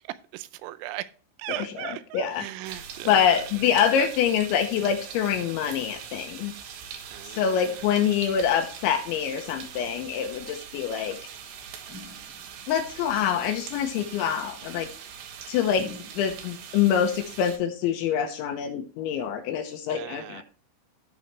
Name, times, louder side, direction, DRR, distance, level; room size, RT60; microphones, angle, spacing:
voice 1, 0.3-1.1 1.4-3.4 3.9-4.1 7.1-8.2 19.9-20.4, right 15 dB, 85° right, 3.3 m, -38 dB
voice 2, 1.5-2.4 3.1-6.5 7.3-11.2 12.7-14.9 15.5-15.8 16.2-20.4, left 8 dB, 80° left, 2.9 m, -25 dB
sound 1, 2.7-17.6, right 7 dB, 70° right, 3.0 m, -42 dB
sound 2, 11.9-12.7 15.8-16.7, left 4 dB, 5° right, 1.9 m, -44 dB
16.0 x 5.6 x 3.1 m
omnidirectional pair, 5.9 m